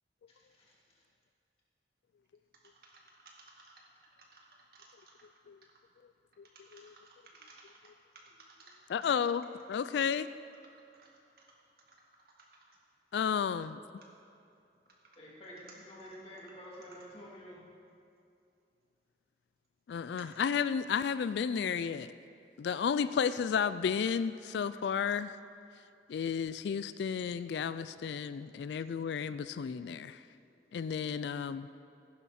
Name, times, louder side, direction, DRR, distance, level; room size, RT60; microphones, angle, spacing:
voice 1, 2.8-3.9 4.2-5.3 6.6-7.9 8.1-8.8 11.0-11.1 11.9-12.0 14.0-14.1 15.7-15.8, right 3 dB, 55° right, -2 dB, 2.1 m, -58 dB
voice 2, 8.9-10.3 13.1-13.7 19.9-22.1 22.6-25.3 26.1-30.2 30.7-31.7, left 7 dB, 80° left, 14 dB, 0.3 m, -32 dB
voice 3, 15.2-17.6, equal, 35° left, -5 dB, 2.6 m, -49 dB
15.0 x 11.0 x 4.3 m, 2.5 s
head